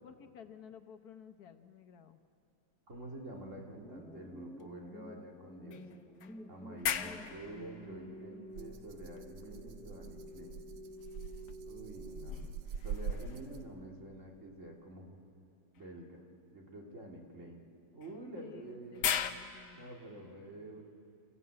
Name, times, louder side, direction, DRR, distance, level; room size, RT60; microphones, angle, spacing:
voice 1, 0.0-2.2 6.8-7.0 13.2-13.4 18.3-20.8, left 8 dB, 70° left, 8 dB, 1.4 m, -55 dB
sound 1, 2.9-4.2 4.6-4.7 5.7-9.2 10.9-14.0 15.7-15.9 18.0-19.3, left 9 dB, 85° left, 1.5 m, -40 dB
voice 2, 2.9-5.8 6.5-10.7 11.6-12.4 12.8-15.2 15.8-16.2 16.5-17.6 17.9-19.2 19.8-20.8, right 1 dB, 50° right, 0 dB, 3.0 m, -48 dB
sound 2, 3.8-12.8, equal, 5° left, 0.5 m, -51 dB
Rattle (instrument), 8.5-13.9, right 7 dB, 80° right, 1.3 m, -44 dB
28.5 x 15.5 x 8.8 m, 2.5 s
omnidirectional pair, 1.7 m